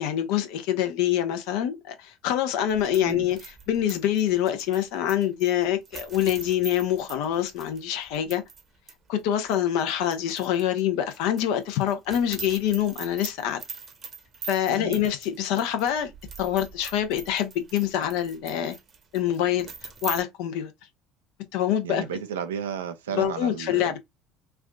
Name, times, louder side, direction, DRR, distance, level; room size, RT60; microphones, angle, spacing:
voice 1, 0.0-8.4 9.1-13.6 14.5-16.1 16.4-18.7 19.1-19.7 20.0-20.7 21.5-22.0 23.1-24.0, left 10 dB, 70° left, 0.7 m, -25 dB
sound 1, 2.7-8.6 8.9-9.0 9.5-10.8 11.1-20.2, right 5 dB, 45° right, 0.9 m, -42 dB
voice 2, 14.7-15.0 21.8-24.0, right 7 dB, 90° right, 0.5 m, -33 dB
3.3 x 2.5 x 2.3 m
hypercardioid pair, 70°, 0 cm